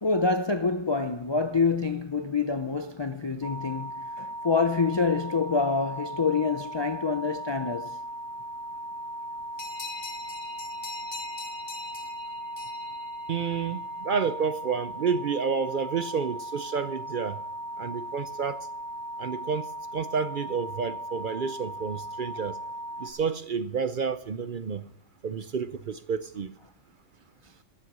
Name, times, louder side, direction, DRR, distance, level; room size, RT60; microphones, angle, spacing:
voice 1, 0.0-8.0, left 4 dB, 40° left, 0.4 m, -26 dB
sound 1, 3.4-23.1, right 1 dB, 60° left, 1.8 m, -38 dB
sound 2, 9.6-13.8, left 4 dB, 80° left, 2.4 m, -42 dB
voice 2, 13.3-17.4 17.8-18.7 19.2-22.6 23.0-24.8 25.2-26.5, right 6 dB, 55° right, 0.6 m, -30 dB
14.0 x 7.7 x 6.7 m
omnidirectional pair, 1.3 m